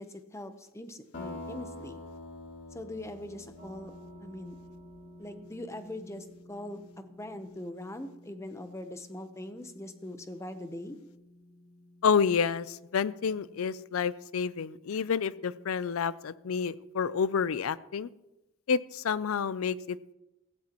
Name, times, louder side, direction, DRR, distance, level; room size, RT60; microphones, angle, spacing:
voice 1, 0.0-2.0 2.7-3.9 4.2-4.5 5.2-11.0, left 1 dB, 15° left, 9 dB, 0.8 m, -42 dB
sound 1, 1.1-5.4, left 2 dB, 55° left, 2.8 m, -45 dB
sound 2, 3.5-17.7, equal, 15° right, 5.7 m, -55 dB
voice 2, 12.0-18.1 18.7-20.1, left 6 dB, 85° left, 18 dB, 0.5 m, -29 dB
16.0 x 15.5 x 3.0 m, 0.96 s
head